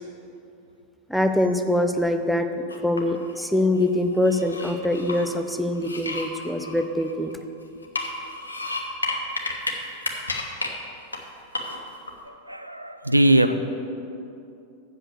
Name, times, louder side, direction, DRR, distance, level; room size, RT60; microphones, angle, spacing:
voice 1, 1.1-7.3, left 1 dB, ahead, 7 dB, 0.6 m, -24 dB
sound 1, 2.7-3.4 3.8-5.3 5.8-7.4 7.8-9.7 10.0-10.7 11.1-11.2 11.5-12.1, left 2 dB, 80° left, 1.0 m, -31 dB
voice 2, 12.3-13.5, right 1 dB, 85° right, 9 dB, 0.4 m, -20 dB
7.8 x 6.5 x 7.6 m, 2.6 s
figure-of-eight pair, 90°, 0 cm